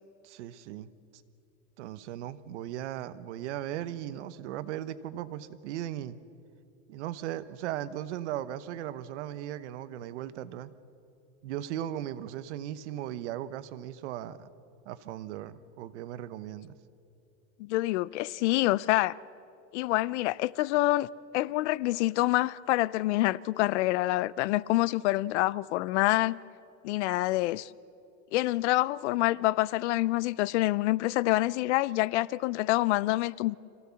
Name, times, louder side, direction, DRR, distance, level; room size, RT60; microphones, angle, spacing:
voice 1, 0.2-0.9 1.8-6.2 6.9-10.7 11.4-14.5 14.8-16.7, right 12 dB, 90° right, 1.1 m, -37 dB
voice 2, 17.6-19.2 19.7-21.1 21.3-26.4 26.8-27.7 28.3-33.6, left 18 dB, 80° left, 0.6 m, -27 dB
26.5 x 15.5 x 7.1 m
supercardioid pair, 160°, 34 cm